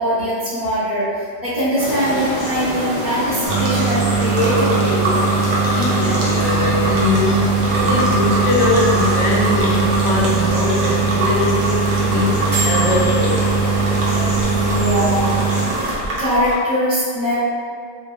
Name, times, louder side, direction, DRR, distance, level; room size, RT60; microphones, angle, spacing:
voice 1, 0.0-5.0 14.4-15.3 16.2-17.4, equal, 25° left, -16 dB, 0.9 m, -21 dB
sound 1, 1.8-16.0, equal, 45° right, 0.9 m, -27 dB
sound 2, 3.4-16.5, right 4 dB, 85° right, 0.9 m, -19 dB
voice 2, 5.7-13.4, left 3 dB, 70° left, -4 dB, 0.8 m, -21 dB
sound 3, 6.4-15.4, left 2 dB, 70° right, 1.3 m, -32 dB
2.5 x 2.1 x 2.3 m, 2.1 s
omnidirectional pair, 1.2 m